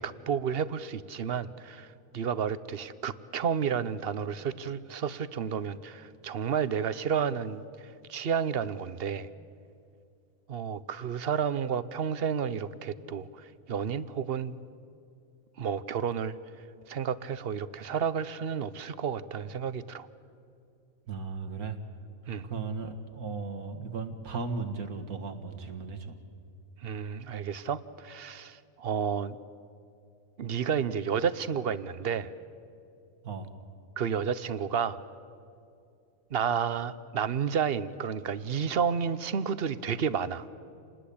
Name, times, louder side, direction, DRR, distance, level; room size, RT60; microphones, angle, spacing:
voice 1, 0.0-9.3 10.5-14.6 15.6-16.4 16.9-20.1 22.3-22.5 26.8-29.4 30.4-32.3 34.0-35.0 36.3-40.5, right 7 dB, 50° right, 15 dB, 0.9 m, -31 dB
voice 2, 21.1-21.8 22.4-26.2 33.2-33.5, right 4 dB, 85° right, 6 dB, 2.2 m, -36 dB
28.5 x 20.0 x 8.5 m, 2.5 s
omnidirectional pair, 1.5 m